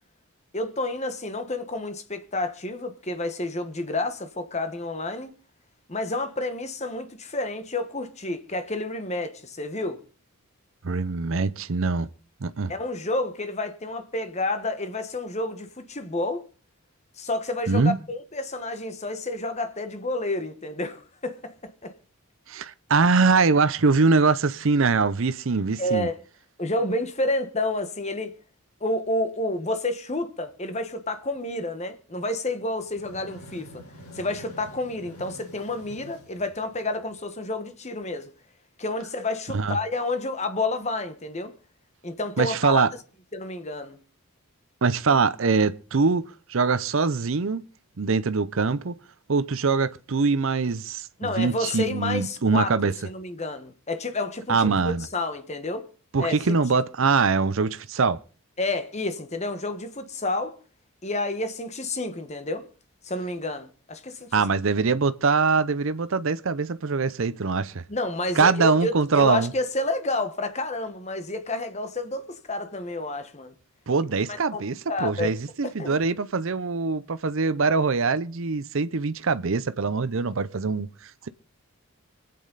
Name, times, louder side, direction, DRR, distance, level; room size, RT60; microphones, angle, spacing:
voice 1, 0.5-5.4 5.9-10.0 12.7-16.4 17.2-21.9 25.8-26.2 26.6-28.3 28.8-33.8 34.1-38.3 38.8-41.5 42.0-42.8 43.3-44.0 51.2-52.7 53.0-55.9 56.2-56.6 58.6-60.6 61.0-62.7 63.0-64.3 67.9-73.5 74.3-74.6 74.9-75.3 75.6-76.0, left 2 dB, 30° left, 1.2 m, -30 dB
voice 2, 10.8-12.1 12.4-12.7 17.7-18.0 22.5-26.1 39.5-39.8 42.4-42.9 44.8-47.6 48.0-49.0 49.3-52.9 54.5-55.1 56.1-58.2 64.3-67.8 68.4-69.5 73.9-81.3, right 4 dB, 60° right, 0.6 m, -23 dB
sound 1, 32.7-37.3, equal, 80° left, 5.0 m, -47 dB
25.0 x 8.6 x 4.0 m
head